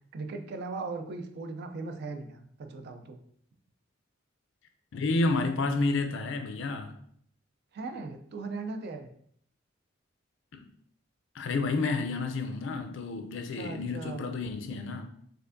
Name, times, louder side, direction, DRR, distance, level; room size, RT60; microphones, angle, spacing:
voice 1, 0.1-3.2 7.7-9.1 13.5-14.3, right 3 dB, 55° right, 0.4 m, -38 dB
voice 2, 4.9-6.9 10.5-10.6 11.3-15.1, left 3 dB, 70° left, 0.5 m, -30 dB
4.4 x 2.5 x 2.5 m
head